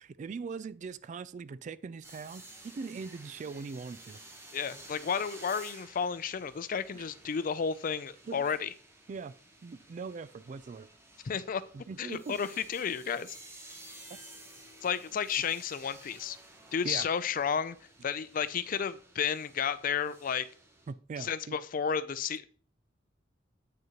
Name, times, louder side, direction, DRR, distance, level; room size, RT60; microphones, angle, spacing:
voice 1, 0.0-4.2 6.9-7.0 8.3-8.6 9.1-9.3 9.6-10.9 11.7-12.4 16.8-17.1 20.9-21.6, right 5 dB, 40° right, 0.3 m, -41 dB
sound 1, 2.0-20.9, right 2 dB, 15° right, 1.0 m, -53 dB
voice 2, 4.5-8.7 11.2-11.6 12.0-13.4 14.8-16.4 16.7-17.8 18.0-20.5 21.2-22.5, left 7 dB, 45° left, 0.4 m, -32 dB
8.7 x 6.4 x 2.9 m
head